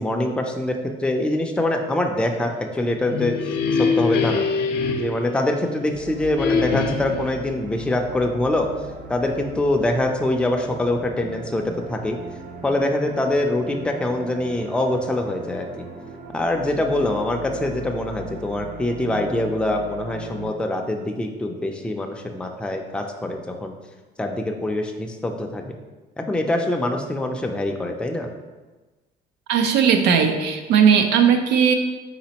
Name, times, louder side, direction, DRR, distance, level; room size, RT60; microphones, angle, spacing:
voice 1, 0.0-3.3 3.7-4.5 5.0-8.7 9.1-12.2 12.6-15.7 16.3-23.7 24.2-25.8 26.2-28.3, left 1 dB, 5° left, 2 dB, 0.4 m, -24 dB
sound 1, 2.8-5.9 6.4-7.3, left 5 dB, 75° left, 0.5 m, -24 dB
sound 2, 5.9-20.5, right 2 dB, 50° right, 0.6 m, -39 dB
voice 2, 29.5-31.7, right 7 dB, 85° right, 6 dB, 0.5 m, -17 dB
4.1 x 4.0 x 2.9 m, 1.2 s
cardioid pair, 110°, 17 cm